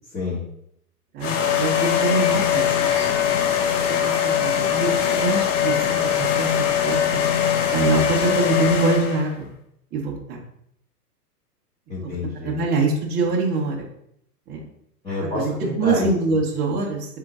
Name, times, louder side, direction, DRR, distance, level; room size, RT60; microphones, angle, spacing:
voice 1, 1.1-3.1 4.0-7.2 7.7-9.5 9.9-10.4 12.0-12.1 12.4-13.8 14.5-14.7 15.6-17.2, right 3 dB, 20° right, -3 dB, 0.9 m, -24 dB
sound 1, 1.2-9.3, left 9 dB, 50° left, 0.7 m, -21 dB
voice 2, 11.9-12.6 15.0-16.4, left 3 dB, 10° left, -11 dB, 1.4 m, -28 dB
3.8 x 3.8 x 3.6 m, 0.74 s
hypercardioid pair, 120°, 48 cm